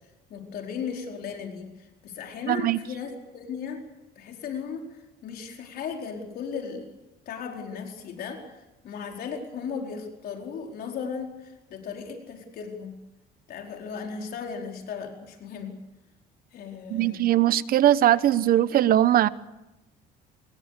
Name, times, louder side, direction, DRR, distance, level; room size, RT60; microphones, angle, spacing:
voice 1, 0.3-3.8 4.2-6.9 7.3-8.5 8.8-13.0 13.5-15.8 16.5-17.2, left 6 dB, 65° left, 2 dB, 4.6 m, -36 dB
voice 2, 2.5-2.8 16.9-19.3, right 12 dB, 60° right, 16 dB, 1.0 m, -20 dB
25.5 x 21.5 x 6.8 m, 1.0 s
cardioid pair, 110°, 17 cm